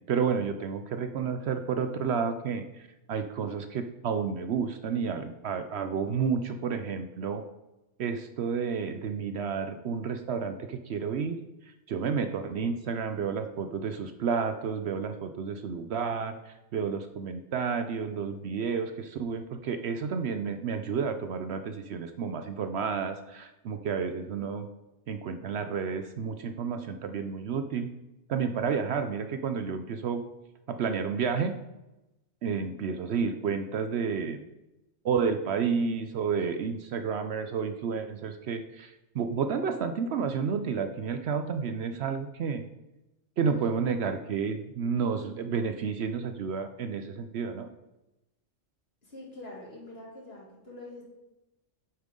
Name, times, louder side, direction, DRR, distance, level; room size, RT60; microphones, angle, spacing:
voice 1, 0.0-7.4 8.0-24.7 25.1-27.9 28.3-30.2 30.7-31.6 32.4-34.4 35.0-42.6 43.4-47.7, right 6 dB, 65° right, 8 dB, 0.8 m, -31 dB
voice 2, 49.0-51.0, left 2 dB, 50° left, -3 dB, 2.7 m, -45 dB
8.8 x 7.3 x 3.7 m, 0.96 s
omnidirectional pair, 1.3 m